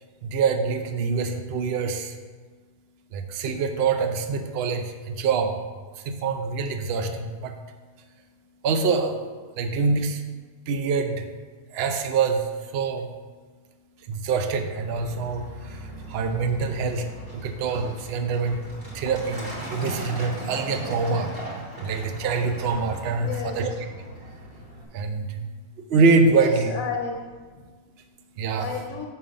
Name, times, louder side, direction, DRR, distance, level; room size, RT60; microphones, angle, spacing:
voice 1, 0.2-2.2 3.1-5.6 5.9-7.6 8.0-8.2 8.6-9.2 9.5-10.2 10.6-11.3 11.7-13.1 14.0-23.7 24.0-26.7 27.6-28.7, right 4 dB, 70° right, 6 dB, 0.6 m, -26 dB
Truck, 14.6-24.8, right 2 dB, 40° right, 1.6 m, -37 dB
voice 2, 23.0-23.6 24.2-24.3 26.3-27.2 27.5-27.7 28.5-29.0, left 5 dB, 65° left, 0 dB, 1.0 m, -32 dB
5.4 x 4.5 x 6.3 m, 1.4 s
omnidirectional pair, 1.7 m